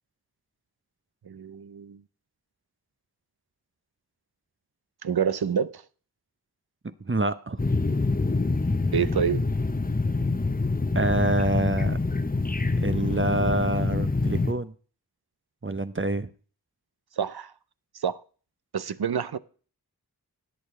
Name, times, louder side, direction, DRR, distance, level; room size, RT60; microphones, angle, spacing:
voice 1, 1.3-2.0 5.0-5.8 8.9-9.5 17.2-17.5 18.0-18.2 18.7-19.4, right 7 dB, 80° right, 0.6 m, -27 dB
voice 2, 7.0-7.6 10.9-12.0 12.8-14.7 15.6-16.3, right 2 dB, 35° right, 0.7 m, -26 dB
sound 1, 7.6-14.5, left 3 dB, 25° left, 0.7 m, -26 dB
19.0 x 6.7 x 3.1 m
wide cardioid pair, 50°, 37 cm